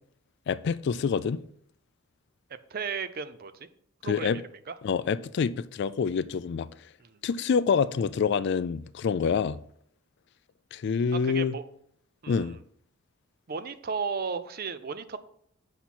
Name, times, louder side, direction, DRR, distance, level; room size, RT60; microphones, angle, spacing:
voice 1, 0.5-1.4 4.0-4.4 4.8-6.7 7.2-9.6 10.7-11.6 12.3-12.6, left 6 dB, 50° left, 0.3 m, -27 dB
voice 2, 2.7-3.7 4.0-4.4 4.7-4.8 7.0-7.2 11.1-11.6 12.2-12.6 13.5-15.2, right 5 dB, 45° right, 0.5 m, -34 dB
7.8 x 5.7 x 4.2 m
head